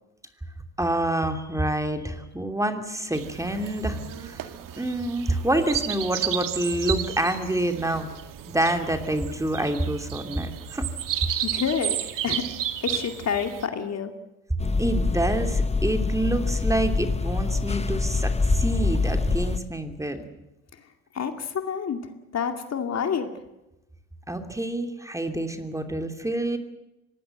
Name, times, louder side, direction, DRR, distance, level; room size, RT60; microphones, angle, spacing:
voice 1, 0.8-4.0 4.2-4.4 4.8-8.1 8.5-10.8 14.8-20.2 24.3-26.6, right 1 dB, 5° right, 6 dB, 2.9 m, -27 dB
sound 1, 3.1-13.7, right 11 dB, 50° right, 2.3 m, -33 dB
voice 2, 11.4-12.0 12.2-12.4 12.8-14.1 21.1-22.0 22.3-23.4, left 7 dB, 40° left, 6 dB, 2.4 m, -28 dB
sound 2, 14.6-19.6, left 3 dB, 15° left, 1.2 m, -25 dB
24.5 x 19.5 x 7.9 m, 0.95 s
hypercardioid pair, 75°, 42 cm